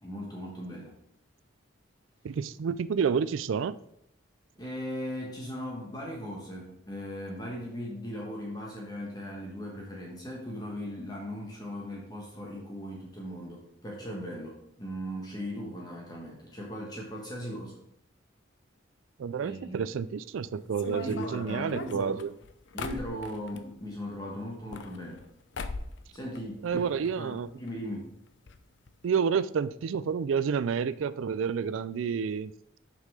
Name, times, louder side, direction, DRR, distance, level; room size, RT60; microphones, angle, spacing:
voice 1, 0.0-0.9 4.6-17.8 19.4-19.8 21.0-22.2 22.7-25.2 26.1-28.1, equal, 20° left, 1.3 m, -38 dB
voice 2, 2.2-3.8 19.2-22.3 26.6-27.5 29.0-32.5, right 6 dB, 85° right, 0.3 m, -29 dB
sound 1, 20.7-23.6 24.5-25.3 25.5-26.0 26.3-27.1 27.4-27.5 27.7-27.8 28.5-28.6 28.9-29.0, left 4 dB, 65° left, 0.6 m, -40 dB
6.6 x 5.5 x 4.8 m
head